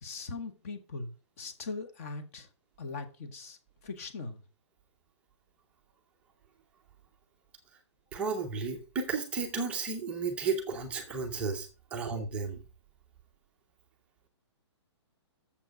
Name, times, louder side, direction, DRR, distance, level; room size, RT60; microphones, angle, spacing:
voice 1, 0.0-2.5 2.8-3.6 3.8-4.4, left 3 dB, 30° left, 1.1 m, -40 dB
voice 2, 8.1-12.6, right 5 dB, 5° right, 0.6 m, -33 dB
7.3 x 7.2 x 5.1 m
hypercardioid pair, 175°, 15 cm